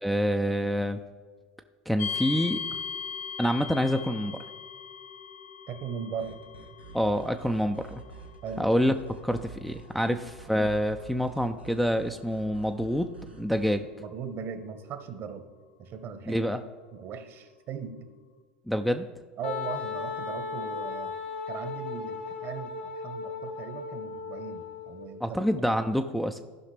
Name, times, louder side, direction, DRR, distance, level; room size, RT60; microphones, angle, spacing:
voice 1, 0.0-1.0 1.9-2.6 3.4-4.4 6.9-8.0 8.6-8.9 9.2-10.2 10.5-13.1 13.4-13.9 16.3-16.6 18.7-19.1 25.2-26.4, equal, ahead, 5 dB, 0.4 m, -27 dB
sound 1, 2.0-16.8, left 6 dB, 40° left, 0.7 m, -41 dB
voice 2, 5.7-6.4 8.4-8.7 10.0-10.2 14.0-15.5 15.8-16.4 16.9-18.0 19.4-21.1 21.5-25.4, right 7 dB, 45° right, 9 dB, 1.1 m, -38 dB
sound 2, 6.2-13.8, right 4 dB, 90° right, 1.1 m, -47 dB
Wind instrument woodwind instrument, 19.4-25.1, left 5 dB, 85° left, 1.5 m, -36 dB
15.0 x 5.6 x 3.3 m, 1.5 s
figure-of-eight pair, 80°, 6 cm